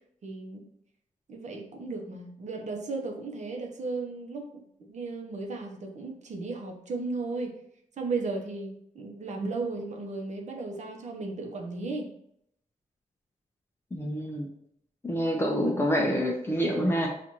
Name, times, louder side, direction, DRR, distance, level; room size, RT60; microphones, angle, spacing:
voice 1, 0.2-0.6 1.3-7.6 8.0-12.2, right 3 dB, 55° right, 2 dB, 0.8 m, -35 dB
voice 2, 13.9-14.5 15.0-17.1, equal, 15° left, -1 dB, 0.6 m, -27 dB
6.0 x 2.5 x 2.9 m, 0.74 s
wide cardioid pair, 140°, 14 cm